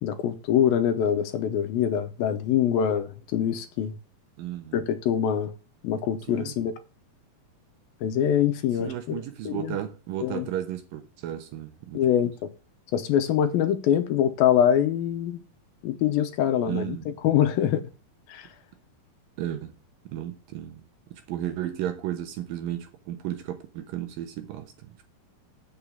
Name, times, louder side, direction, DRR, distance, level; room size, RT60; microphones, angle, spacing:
voice 1, 0.0-4.0 4.7-5.5 5.8-6.7 8.0-9.7 10.2-10.5 11.9-12.3 12.9-15.4 15.8-17.8 18.3-18.5, left 9 dB, 75° left, 2.4 m, -24 dB
voice 2, 4.4-4.8 6.3-6.6 8.8-12.1 16.6-17.1 19.4-19.7 20.1-25.1, right 12 dB, 70° right, 2.4 m, -34 dB
8.5 x 6.4 x 7.1 m
omnidirectional pair, 4.7 m